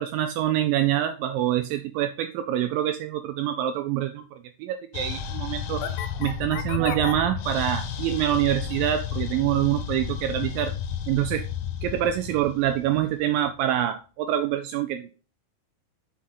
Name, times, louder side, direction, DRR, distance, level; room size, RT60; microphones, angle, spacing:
voice 1, 0.0-5.8 6.2-10.7 11.1-11.4 11.8-15.1, right 12 dB, 80° right, 8 dB, 2.1 m, -26 dB
sound 1, 4.9-13.5, left 8 dB, 85° left, 2.8 m, -32 dB
6.2 x 5.7 x 3.8 m, 0.36 s
omnidirectional pair, 4.3 m